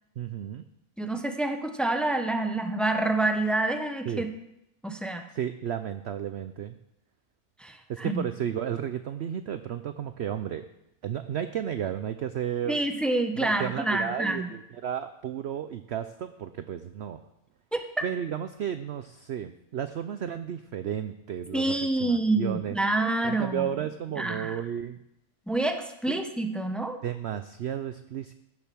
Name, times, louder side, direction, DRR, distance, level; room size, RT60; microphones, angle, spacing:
voice 1, 0.2-0.6 4.1-4.2 5.3-6.7 7.9-10.6 11.0-12.8 13.4-17.2 18.0-22.8 23.2-25.0 26.1-26.2 27.0-28.3, right 9 dB, 65° right, 10 dB, 0.7 m, -33 dB
voice 2, 1.0-4.3 4.8-5.2 7.6-8.2 12.7-14.5 17.7-18.0 21.5-23.7 24.2-24.6 25.5-27.0, right 2 dB, ahead, 6 dB, 0.5 m, -27 dB
15.5 x 6.8 x 6.1 m, 0.83 s
omnidirectional pair, 1.6 m